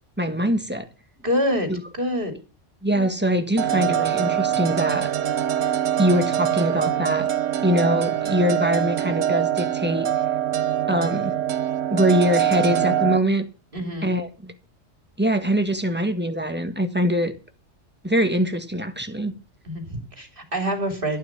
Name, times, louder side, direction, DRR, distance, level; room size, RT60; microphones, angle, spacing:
voice 1, 0.2-0.9 1.7-1.8 2.8-5.1 6.0-7.3 7.6-10.1 10.9-11.3 11.9-13.4 14.0-14.5 15.2-17.3 18.0-19.3, equal, 10° right, 1.6 m, -23 dB
voice 2, 1.2-2.3 13.7-14.2 19.7-21.2, equal, 45° right, 3.1 m, -26 dB
sound 1, 3.6-13.2, right 10 dB, 80° right, 1.2 m, -24 dB
12.5 x 11.5 x 5.9 m
omnidirectional pair, 1.3 m